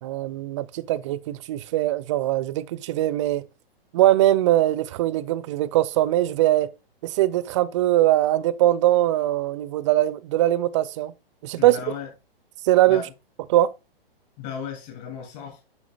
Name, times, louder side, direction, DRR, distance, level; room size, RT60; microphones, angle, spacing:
voice 1, 0.0-3.5 3.9-6.7 7.0-11.1 11.4-11.8 12.6-13.0 13.5-13.7, right 14 dB, 30° right, 0.4 m, -21 dB
voice 2, 11.6-12.1 12.9-13.1 14.4-15.6, left 7 dB, 45° left, 2.7 m, -35 dB
8.6 x 6.0 x 2.3 m
hypercardioid pair, 125°, 30 cm